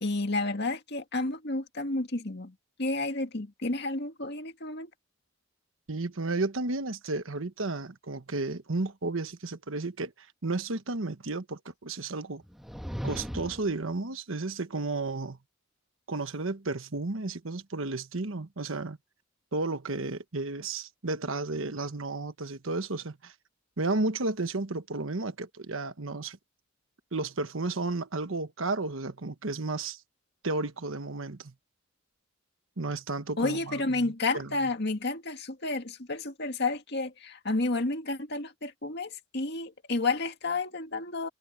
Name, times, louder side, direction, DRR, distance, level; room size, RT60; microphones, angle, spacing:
voice 1, 0.0-4.9 33.4-41.3, left 2 dB, 55° left, 2.1 m, -31 dB
voice 2, 5.9-12.4 13.0-15.4 16.1-19.0 19.5-23.3 23.8-26.4 27.1-30.0 30.4-31.5 32.8-34.5, right 3 dB, 80° right, 1.2 m, -33 dB
sound 1, 12.4-13.8, equal, ahead, 1.5 m, -37 dB
head